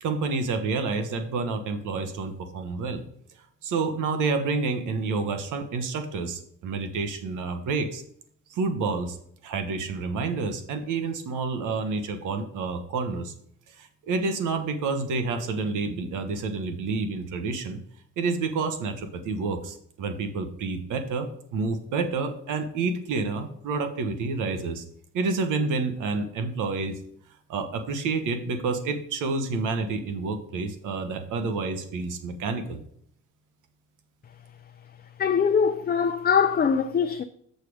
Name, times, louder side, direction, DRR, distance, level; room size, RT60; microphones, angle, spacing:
voice 1, 0.0-3.0 3.6-8.0 8.5-9.2 9.4-13.3 13.7-17.8 18.2-24.8 25.1-27.0 27.5-32.8, right 4 dB, 85° right, 1.3 m, -29 dB
voice 2, 35.2-37.2, left 6 dB, 30° left, 0.5 m, -22 dB
6.8 x 6.7 x 4.9 m
cardioid pair, 90°, 30 cm